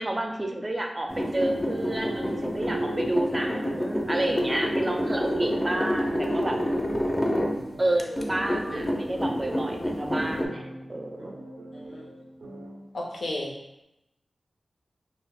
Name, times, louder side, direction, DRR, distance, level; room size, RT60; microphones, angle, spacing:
voice 1, 0.0-6.6 7.8-11.3, right 1 dB, 30° right, 3 dB, 0.4 m, -30 dB
sound 1, 1.1-7.6 8.0-10.5, equal, 30° left, 0.5 m, -28 dB
sound 2, 1.2-12.9, right 2 dB, 90° right, 0.4 m, -39 dB
voice 2, 12.9-13.5, left 1 dB, 85° left, -2 dB, 0.5 m, -33 dB
2.5 x 2.0 x 3.5 m, 0.87 s
cardioid pair, 50°, 0 cm